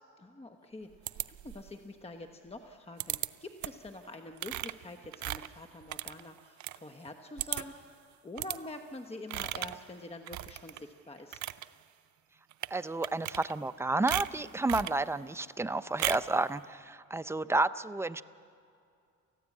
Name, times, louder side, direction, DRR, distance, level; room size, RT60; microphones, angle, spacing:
voice 1, 0.2-0.9 1.3-11.4, left 2 dB, 20° left, 6 dB, 1.1 m, -46 dB
sound 1, 1.1-1.8 3.0-3.3 3.6-3.9 4.4-6.8 7.1-7.2 7.4-7.8 8.4-8.6 9.3-9.8 10.3-10.8 11.2-11.7 12.5-12.7 13.0-13.7 14.1-15.0 16.0-16.3, right 14 dB, 70° right, 0.6 m, -36 dB
voice 2, 12.7-18.2, right 2 dB, 10° right, 12 dB, 0.6 m, -31 dB
28.5 x 15.0 x 8.4 m, 2.4 s
cardioid pair, 90°, 30 cm